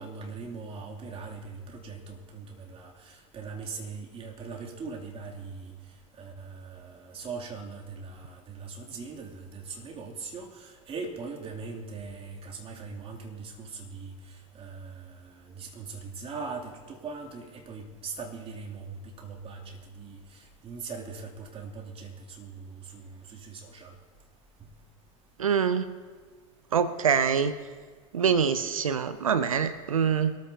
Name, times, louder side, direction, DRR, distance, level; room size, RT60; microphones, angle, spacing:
voice 1, 0.0-5.7 6.2-23.9, right 4 dB, 35° right, 0 dB, 2.7 m, -41 dB
voice 2, 25.4-25.9 26.7-27.5 28.1-30.3, right 7 dB, 85° right, 13 dB, 0.6 m, -25 dB
23.0 x 14.0 x 2.8 m, 1.5 s
figure-of-eight pair, 75°, 17 cm